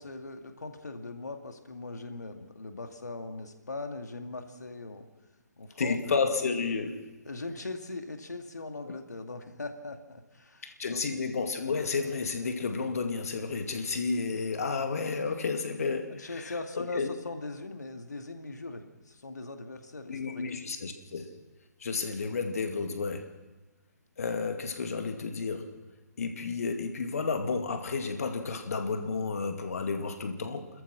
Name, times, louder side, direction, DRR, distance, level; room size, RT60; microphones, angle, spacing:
voice 1, 0.0-5.1 5.6-6.1 7.2-11.0 16.1-20.5, left 3 dB, 75° left, 6 dB, 2.2 m, -40 dB
voice 2, 5.8-7.1 10.6-17.1 20.1-21.3 21.8-23.3 24.2-25.8 26.2-30.7, left 4 dB, 60° left, 6 dB, 2.3 m, -31 dB
29.5 x 14.0 x 6.2 m, 1.2 s
figure-of-eight pair, 135°, 9 cm